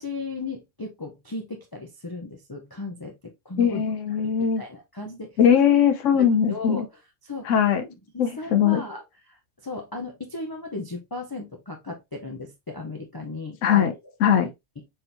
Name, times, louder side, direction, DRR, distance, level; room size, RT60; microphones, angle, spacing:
voice 1, 0.0-3.8 4.2-5.4 6.1-6.9 7.2-7.5 7.8-13.9 14.3-14.5, left 3 dB, 30° left, 0.5 m, -36 dB
voice 2, 3.6-4.6 5.4-6.8 7.5-7.8 8.2-8.8 13.6-13.9 14.2-14.5, left 8 dB, 85° left, 1.0 m, -20 dB
4.3 x 3.7 x 2.5 m
omnidirectional pair, 1.2 m